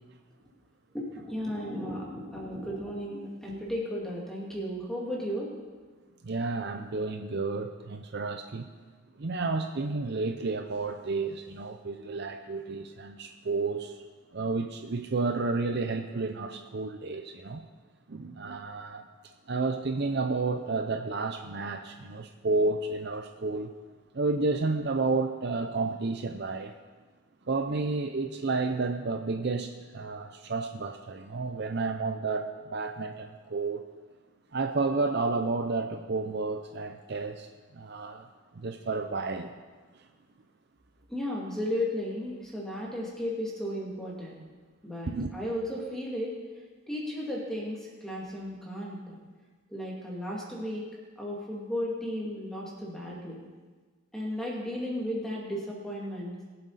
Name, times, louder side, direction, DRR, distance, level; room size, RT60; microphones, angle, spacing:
voice 1, 0.9-5.5 41.1-44.4 44.8-46.3 46.9-49.2 49.7-50.8 51.2-53.4 54.1-56.3, left 1 dB, ahead, -4 dB, 2.4 m, -34 dB
voice 2, 6.2-8.7 9.2-14.0 14.3-17.7 18.1-19.0 19.5-23.7 24.1-26.7 27.5-33.8 34.5-37.5 37.7-38.3 38.6-39.5 45.1-45.3, right 3 dB, 50° right, 7 dB, 0.5 m, -31 dB
22.0 x 7.6 x 4.1 m, 1.4 s
head